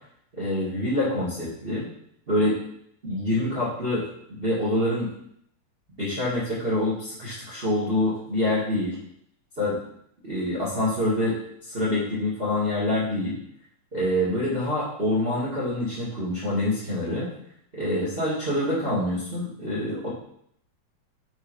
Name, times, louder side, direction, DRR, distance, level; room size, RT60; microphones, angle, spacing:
voice 1, 0.4-1.9 2.3-2.6 3.0-5.1 6.0-8.9 9.6-9.8 10.2-11.4 11.6-13.3 13.9-17.3 17.7-20.1, left 1 dB, 20° right, -7 dB, 1.8 m, -26 dB
7.8 x 4.6 x 4.3 m, 0.69 s
omnidirectional pair, 3.7 m